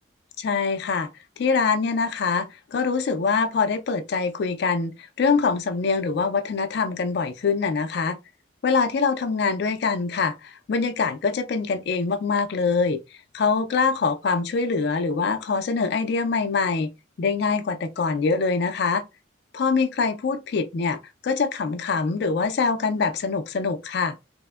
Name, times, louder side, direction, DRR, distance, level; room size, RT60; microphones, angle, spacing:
voice 1, 0.4-1.1 1.4-8.2 8.6-13.0 13.3-16.9 17.2-19.0 19.5-24.1, left 4 dB, 55° left, 0.3 m, -24 dB
3.3 x 2.0 x 2.2 m
head